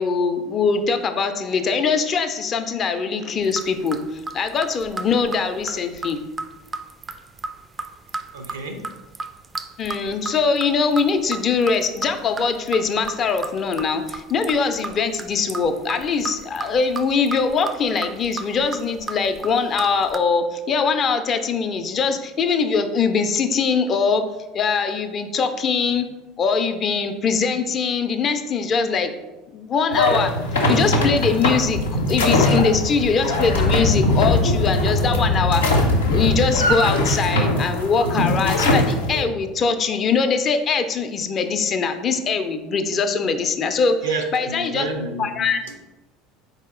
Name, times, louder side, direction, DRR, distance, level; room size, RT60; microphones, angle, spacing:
voice 1, 0.0-6.2 9.8-24.2 24.5-26.1 26.4-29.1 29.5-30.3 30.7-35.6 36.1-44.0 44.3-44.9 45.2-45.6, left 5 dB, 40° left, 8 dB, 0.4 m, -22 dB
sound 1, 3.4-20.2, right 3 dB, 25° right, 0.3 m, -34 dB
voice 2, 8.3-8.8 44.0-45.8, right 3 dB, 80° right, 5 dB, 0.5 m, -30 dB
sound 2, 29.9-39.2, left 1 dB, 80° left, 0.6 m, -20 dB
4.0 x 2.7 x 3.7 m, 1.1 s
figure-of-eight pair, 70°, 0 cm